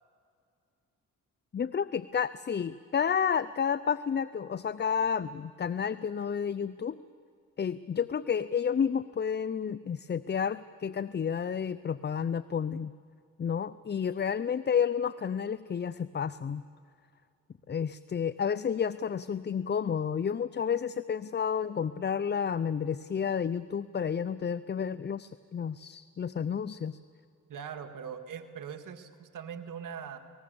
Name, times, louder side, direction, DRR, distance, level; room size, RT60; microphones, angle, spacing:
voice 1, 1.5-7.0 7.6-12.9 13.4-16.6 17.7-27.0, left 7 dB, 35° left, 16 dB, 0.5 m, -31 dB
voice 2, 27.5-30.2, right 7 dB, 75° right, 7 dB, 1.9 m, -41 dB
29.0 x 19.5 x 7.0 m, 2.4 s
cardioid pair, 65°, 32 cm